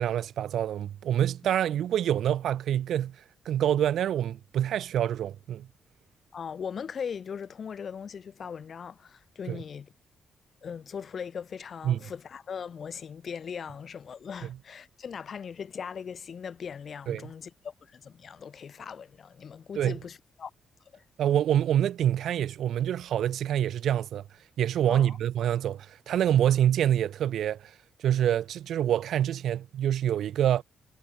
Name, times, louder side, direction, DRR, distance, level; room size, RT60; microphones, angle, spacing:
voice 1, 0.0-5.7 9.5-9.6 11.8-12.0 14.4-14.5 17.1-17.3 19.8-20.0 21.2-24.2 24.6-27.7 28.0-30.6, right 10 dB, 70° right, 0.4 m, -26 dB
voice 2, 6.3-9.9 10.6-20.5 20.9-21.0 24.9-25.2, left 7 dB, 45° left, 1.1 m, -39 dB
cardioid pair, 135°, 0 cm